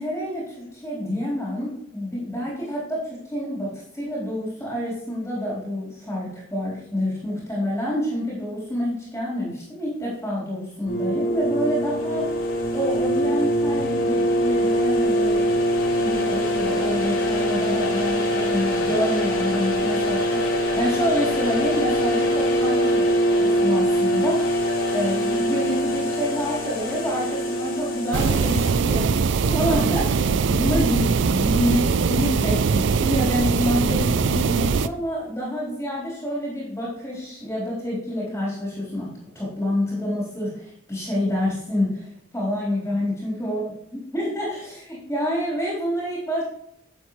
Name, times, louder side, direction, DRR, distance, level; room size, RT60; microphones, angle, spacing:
voice 1, 0.0-12.3 12.7-23.1 23.3-24.6 24.9-39.1 39.3-43.7 43.9-46.4, equal, 10° left, -7 dB, 3.8 m, -28 dB
sound 1, 10.9-28.7, equal, 90° left, 3.2 m, -23 dB
sound 2, 28.1-34.9, right 5 dB, 60° right, 0.4 m, -21 dB
11.0 x 7.6 x 3.2 m, 0.77 s
head